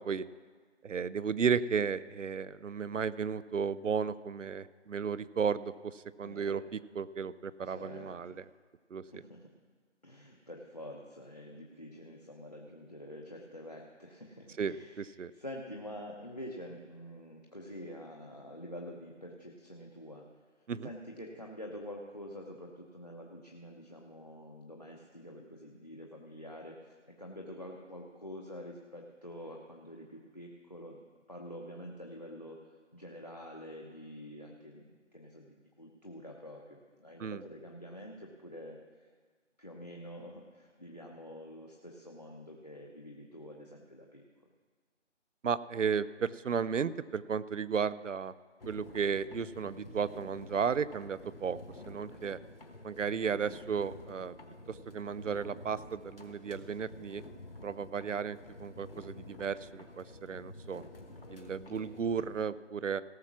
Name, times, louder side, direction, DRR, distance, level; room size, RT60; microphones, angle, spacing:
voice 1, 0.8-8.4 8.9-9.0 14.6-15.3 20.7-20.9 37.2-37.4 45.4-48.3 48.7-51.6 51.9-52.4 52.8-54.3 54.7-57.2 57.6-60.8 61.3-63.0, right 6 dB, 85° right, 17 dB, 0.6 m, -34 dB
voice 2, 6.2-6.6 7.6-8.4 9.0-9.4 10.0-15.1 15.3-20.2 20.8-26.8 27.2-31.0 31.3-32.6 32.9-34.8 35.1-38.8 39.6-44.2 53.4-53.6 61.4-61.9, equal, 35° left, 0 dB, 0.8 m, -47 dB
sound 1, 48.6-62.5, left 2 dB, 50° left, 1.4 m, -50 dB
17.5 x 5.9 x 6.0 m, 1.5 s
figure-of-eight pair, 180°, 36 cm